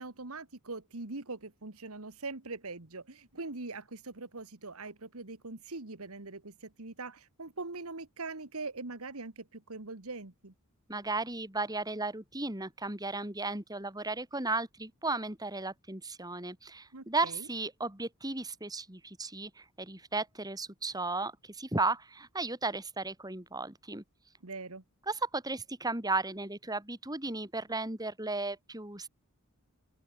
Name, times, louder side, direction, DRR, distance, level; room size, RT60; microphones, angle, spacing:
voice 1, 0.0-10.5 16.9-17.5 24.4-24.8, right 3 dB, 80° right, 2.0 m, -42 dB
voice 2, 10.9-24.0 25.1-29.1, right 3 dB, 15° right, 3.8 m, -35 dB
open air
head